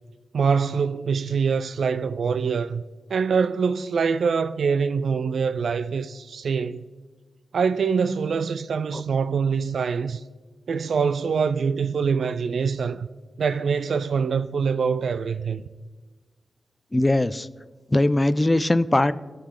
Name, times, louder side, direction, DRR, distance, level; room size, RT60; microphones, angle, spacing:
voice 1, 0.3-2.8 3.1-6.9 7.5-10.2 10.7-13.1 13.4-15.6, right 5 dB, 80° right, 0.3 m, -24 dB
voice 2, 16.9-17.5 17.9-19.1, left 1 dB, 15° left, 0.3 m, -20 dB
18.0 x 6.7 x 3.7 m
wide cardioid pair, 140°, 0 cm